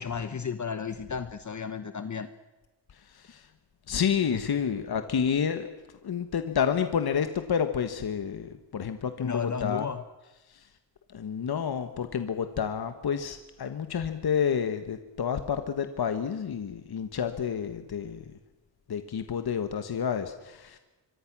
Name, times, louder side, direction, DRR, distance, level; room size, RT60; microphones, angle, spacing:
voice 1, 0.0-2.3 4.3-4.4 9.2-10.0, left 6 dB, 40° left, 10 dB, 1.1 m, -33 dB
voice 2, 2.9-3.5 3.9-5.7 6.0-9.9 10.5-10.7 11.1-18.4 18.9-20.8, left 7 dB, 55° left, 8 dB, 1.5 m, -29 dB
25.0 x 24.5 x 6.2 m, 1.1 s
wide cardioid pair, 110°, 44 cm